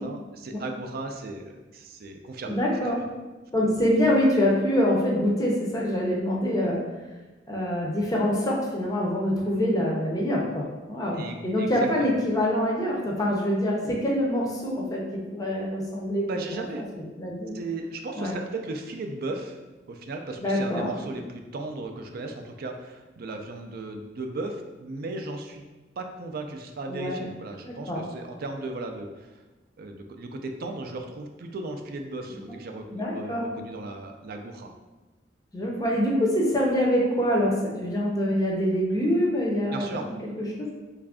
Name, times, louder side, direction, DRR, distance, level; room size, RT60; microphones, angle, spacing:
voice 1, 0.0-2.6 11.1-12.1 16.3-16.9 17.5-19.6 19.9-25.7 26.0-29.4 29.8-34.7 39.7-40.1, right 2 dB, 55° right, 4 dB, 0.4 m, -36 dB
voice 2, 2.5-3.0 3.5-6.8 7.5-16.2 16.9-17.5 18.2-18.4 20.4-20.9 26.9-27.2 27.6-28.0 32.9-33.5 35.5-37.5 37.8-40.7, equal, 20° left, -3 dB, 0.5 m, -25 dB
3.2 x 2.4 x 3.5 m, 1.2 s
head